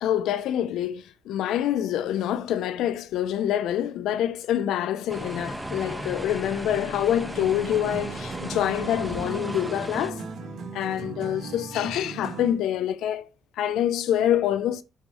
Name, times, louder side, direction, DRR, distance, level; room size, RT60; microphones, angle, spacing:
voice 1, 0.0-10.2 10.7-13.3 13.6-14.8, left 11 dB, 85° left, 0.6 m, -26 dB
sound 1, 5.1-10.1, right 1 dB, 5° right, 1.4 m, -35 dB
sound 2, 7.3-12.7, right 4 dB, 65° right, 2.0 m, -37 dB
10.0 x 5.5 x 3.1 m
cardioid pair, 90°, 0 cm